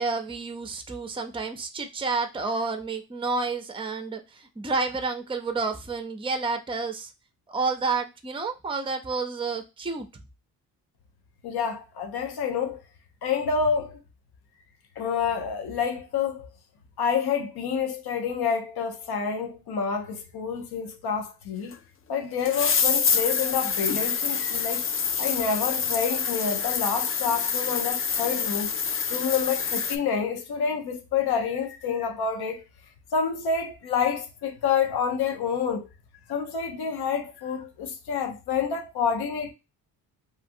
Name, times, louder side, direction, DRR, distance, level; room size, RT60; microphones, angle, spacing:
voice 1, 0.0-7.1 7.5-10.1, right 4 dB, 15° right, 0.6 m, -30 dB
voice 2, 11.4-12.8 13.2-14.0 15.0-16.5 17.0-21.8 22.1-24.9 25.2-28.7 29.1-32.6 33.1-35.9 36.3-39.5, left 6 dB, 75° left, 0.7 m, -28 dB
sound 1, 21.7-21.8 22.4-30.0, left 6 dB, 35° left, 0.4 m, -26 dB
3.1 x 2.4 x 2.6 m
cardioid pair, 80°, 38 cm